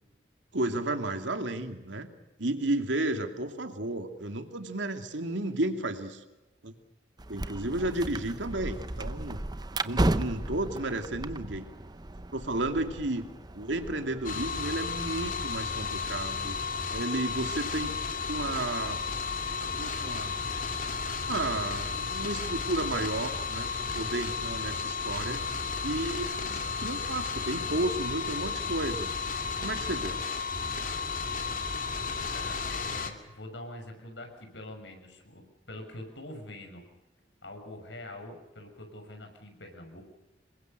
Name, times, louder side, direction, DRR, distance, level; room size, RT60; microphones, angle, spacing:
voice 1, 0.5-2.1 2.4-6.2 6.6-6.8 7.3-9.4 9.8-11.7 12.3-13.3 13.5-16.6 16.9-18.0 18.3-19.0 19.5-20.4 21.2-25.5 25.8-29.1 29.6-30.2, right 2 dB, 90° right, 6 dB, 2.7 m, -32 dB
sound 1, 7.2-14.3, right 1 dB, 20° right, 0.7 m, -34 dB
sound 2, 14.2-33.1, left 5 dB, 45° left, 2.5 m, -33 dB
voice 2, 32.1-36.8 37.4-40.0, left 1 dB, 80° left, 5 dB, 6.4 m, -44 dB
27.5 x 22.5 x 6.7 m, 1.0 s
head